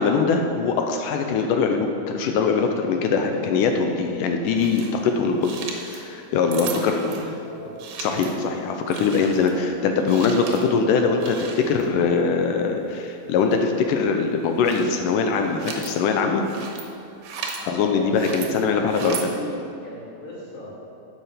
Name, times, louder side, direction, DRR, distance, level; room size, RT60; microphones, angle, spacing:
voice 1, 0.0-6.9 8.0-16.5 17.7-19.3, left 5 dB, 80° left, 4 dB, 2.0 m, -22 dB
sound 1, 4.6-4.9 5.4-6.0 6.5-7.3 7.8-8.4 8.9-9.6 10.0-10.7 11.2-11.9 13.4-13.6 14.4-14.9 15.3-15.9 16.4-16.8 17.2-17.6 18.1-18.5 18.9-19.2, right 6 dB, 75° right, 2.7 m, -36 dB
voice 2, 6.5-7.7 17.6-19.6 19.8-20.7, left 1 dB, 40° left, -8 dB, 3.6 m, -37 dB
11.0 x 7.5 x 5.0 m, 2.8 s
omnidirectional pair, 4.4 m